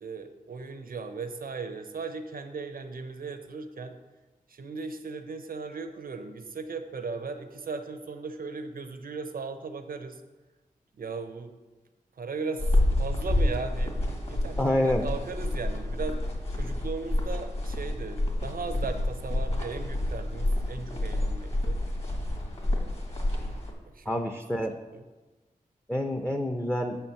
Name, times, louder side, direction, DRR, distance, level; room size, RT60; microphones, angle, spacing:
voice 1, 0.0-4.0 4.5-10.2 11.0-11.5 12.2-12.7 13.0-16.2 16.5-21.8 23.9-24.6, right 4 dB, 75° right, 8 dB, 0.7 m, -37 dB
sound 1, 12.6-23.7, left 1 dB, 45° left, 1.8 m, -29 dB
voice 2, 14.6-15.1 24.1-24.7 25.9-27.0, left 1 dB, 10° left, 4 dB, 0.6 m, -27 dB
7.0 x 4.5 x 6.8 m, 1.2 s
cardioid pair, 60°, 15 cm